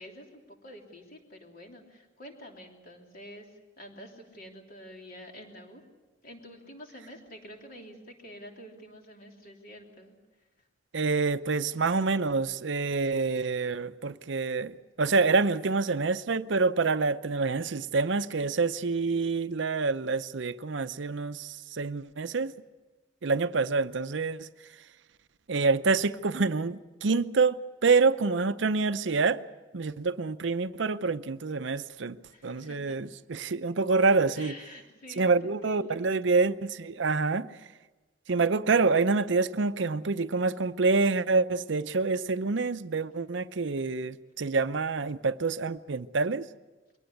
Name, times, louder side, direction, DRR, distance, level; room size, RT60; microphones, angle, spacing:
voice 1, 0.0-5.8 6.2-10.1 10.6-10.7 23.3-23.7 32.3-33.0 34.3-36.0, equal, 50° left, 3.2 m, -48 dB
voice 2, 10.9-22.5 23.2-24.5 25.5-29.4 29.7-32.2 32.4-34.5 35.2-37.5 38.3-46.4, right 4 dB, 65° right, 0.6 m, -27 dB
22.5 x 18.0 x 8.4 m
head